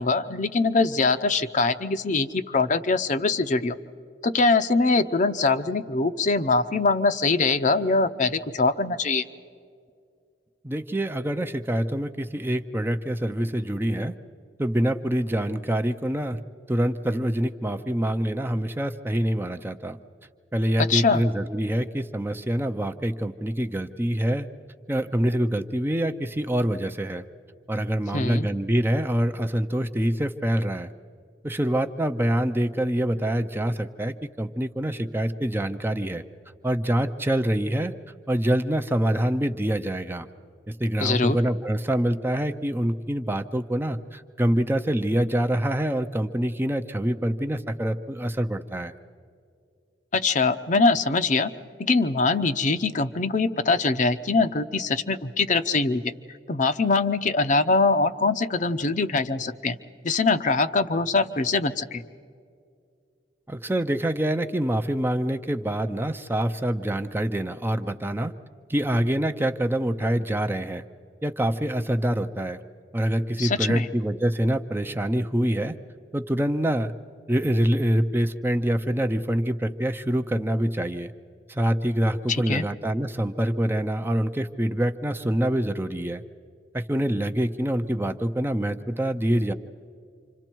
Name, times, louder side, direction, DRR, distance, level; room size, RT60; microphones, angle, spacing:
voice 1, 0.0-3.8 4.2-9.2 20.8-21.2 28.1-28.5 41.0-41.4 50.1-51.5 51.8-56.1 56.5-59.8 60.0-62.0 73.4-73.9 82.3-82.6, left 3 dB, 45° left, 10 dB, 0.7 m, -23 dB
voice 2, 10.6-14.1 14.6-16.4 16.7-20.0 20.5-24.5 24.9-27.2 27.7-30.9 31.4-36.2 36.6-37.9 38.3-40.3 40.8-48.9 63.5-68.3 68.7-70.8 71.2-72.6 72.9-75.8 76.1-76.9 77.3-81.1 81.5-86.2 86.7-89.5, right 1 dB, 10° right, 7 dB, 0.6 m, -25 dB
28.5 x 26.0 x 4.6 m, 2.3 s
head